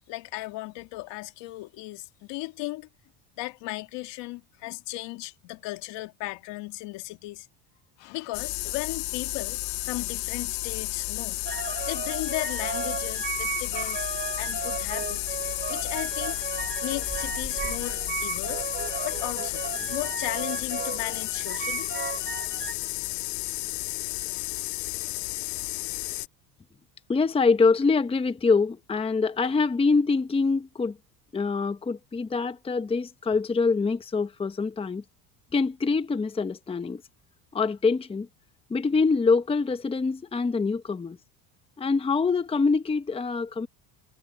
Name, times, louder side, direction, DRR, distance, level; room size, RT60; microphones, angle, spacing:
voice 1, 0.1-2.9 3.4-7.5 8.0-9.6 9.8-11.4 11.9-15.4 15.7-16.4 16.8-18.7 19.0-19.6 19.9-21.9, left 20 dB, 70° left, 2.0 m, -36 dB
sound 1, 8.3-26.3, left 25 dB, 85° left, 1.7 m, -32 dB
sound 2, 11.5-22.7, right 6 dB, 25° right, 2.7 m, -35 dB
voice 2, 27.1-30.9 31.3-35.0 35.5-37.0 37.5-38.3 38.7-41.2 41.8-43.7, left 4 dB, 15° left, 0.9 m, -25 dB
cardioid pair, 120°, 45 cm